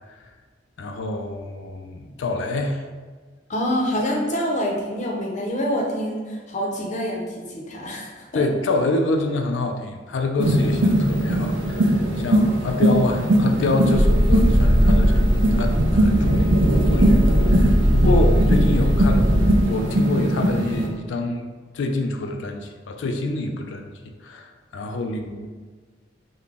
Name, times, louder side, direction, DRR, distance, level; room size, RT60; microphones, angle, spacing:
voice 1, 0.8-2.8 8.3-19.3 19.6-21.5 21.7-23.9 24.2-25.5, left 2 dB, 80° left, 5 dB, 0.4 m, -26 dB
voice 2, 3.5-8.4 18.0-18.3, equal, 40° left, -1 dB, 0.6 m, -26 dB
sound 1, 10.4-20.9, right 1 dB, 90° right, 0.5 m, -21 dB
sound 2, 13.9-19.6, equal, 10° right, 0.6 m, -19 dB
3.8 x 2.2 x 3.4 m, 1.4 s
head